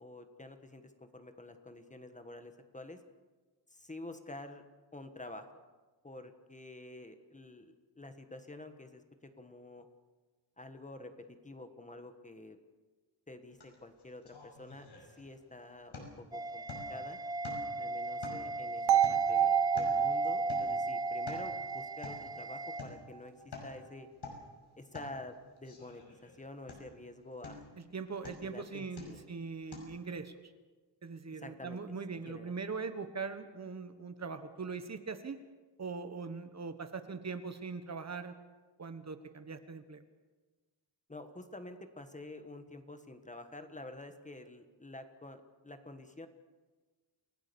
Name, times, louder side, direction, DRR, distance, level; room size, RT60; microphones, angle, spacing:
voice 1, 0.0-3.0 3.7-4.6 4.9-5.6 6.0-9.0 9.4-9.9 10.6-11.1 11.4-12.6 13.3-14.9 15.2-16.6 16.9-17.2 17.8-24.1 24.8-27.6 28.2-29.3 31.3-31.8 32.3-32.5 41.1-46.3, left 2 dB, 15° left, 7 dB, 1.4 m, -49 dB
sound 1, 13.6-13.7 14.0-15.5 15.9-16.3 16.7-17.0 17.4-17.9 18.2-20.1 20.5-20.8 21.1-21.5 22.0-22.3 22.8-23.0 23.3-23.8 24.1-24.5 24.9-25.2 25.6-26.4 26.7-27.0 27.4-27.8 28.2-28.5 29.0-29.3 29.7-29.8, left 3 dB, 65° left, 5.8 m, -48 dB
sound 2, 16.3-22.8, right 2 dB, 10° right, 0.6 m, -36 dB
sound 3, 18.9-22.9, right 11 dB, 65° right, 0.6 m, -31 dB
voice 2, 27.9-30.4 31.0-35.4 35.8-38.3 38.8-40.0, right 4 dB, 35° right, 9 dB, 1.3 m, -41 dB
28.5 x 17.5 x 7.0 m, 1.3 s
wide cardioid pair, 165°, 43 cm